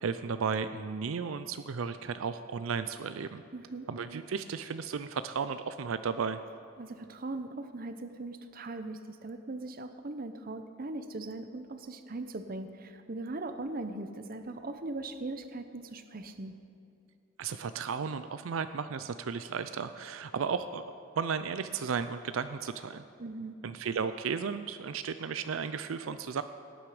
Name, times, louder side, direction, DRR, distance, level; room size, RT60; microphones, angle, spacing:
voice 1, 0.0-3.4 3.9-6.4 17.4-20.8 21.1-23.0 23.6-26.4, right 6 dB, 80° right, 11 dB, 0.5 m, -34 dB
voice 2, 3.5-3.9 6.8-16.6 23.2-23.5, right 2 dB, 45° right, 9 dB, 0.7 m, -40 dB
17.5 x 9.4 x 5.0 m, 2.7 s
head